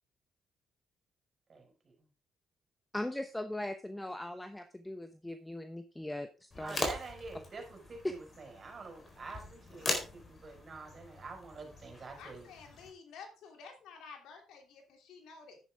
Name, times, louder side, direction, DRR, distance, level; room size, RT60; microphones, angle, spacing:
voice 1, 1.5-1.9 6.6-12.5, right 4 dB, 40° right, 3 dB, 5.1 m, -47 dB
voice 2, 2.9-6.8, left 1 dB, 10° left, 9 dB, 0.9 m, -40 dB
sound 1, 6.5-12.9, left 2 dB, 35° left, 4.3 m, -41 dB
voice 3, 12.2-15.6, left 5 dB, 85° left, 4 dB, 3.0 m, -51 dB
10.5 x 9.9 x 3.6 m, 0.33 s
cardioid pair, 90°, 0 cm